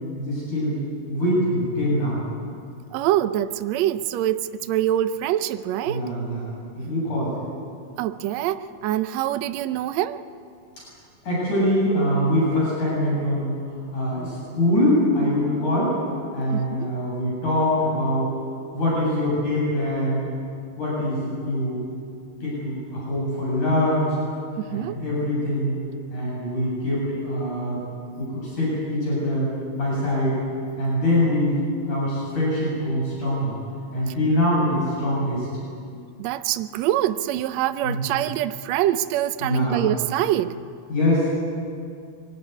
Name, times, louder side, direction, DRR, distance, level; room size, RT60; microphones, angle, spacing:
voice 1, 0.2-0.8 1.1-2.2 5.9-6.5 6.7-7.4 10.8-10.9 11.2-13.6 13.9-16.0 16.3-18.3 18.7-20.2 20.8-21.8 22.4-24.1 24.7-25.8 26.1-27.8 28.2-30.4 30.8-33.6 33.9-35.5 37.8-38.1 39.4-39.9 40.9-41.3, left 1 dB, 65° left, 9.6 m, -23 dB
voice 2, 2.9-6.0 8.0-10.2 16.5-16.9 24.6-25.0 34.1-34.2 36.2-40.6, right 12 dB, 75° right, 1.7 m, -25 dB
23.5 x 19.0 x 9.6 m
omnidirectional pair, 3.9 m